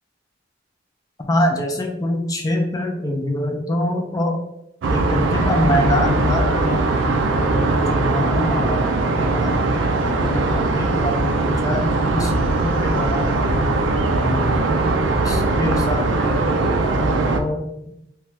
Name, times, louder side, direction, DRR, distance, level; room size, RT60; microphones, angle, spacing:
voice 1, 1.3-4.4 4.9-9.6 10.0-14.5 15.2-17.9, left 1 dB, 20° left, 2 dB, 0.4 m, -25 dB
sound 1, 4.8-17.4, right 2 dB, 80° right, 0.4 m, -20 dB
2.7 x 2.3 x 3.2 m, 0.83 s
head